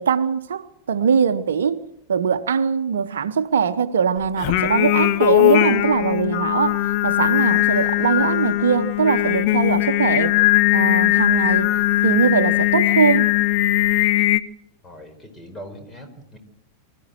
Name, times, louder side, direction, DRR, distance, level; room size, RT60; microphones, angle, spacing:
voice 1, 0.0-1.8 2.1-10.4 10.7-13.3, right 6 dB, 65° right, 0.9 m, -21 dB
Singing, 4.4-14.4, left 16 dB, 45° left, 1.0 m, -19 dB
voice 2, 14.8-16.4, equal, 15° left, 4.8 m, -40 dB
24.5 x 14.5 x 7.9 m
figure-of-eight pair, 90°, 0 cm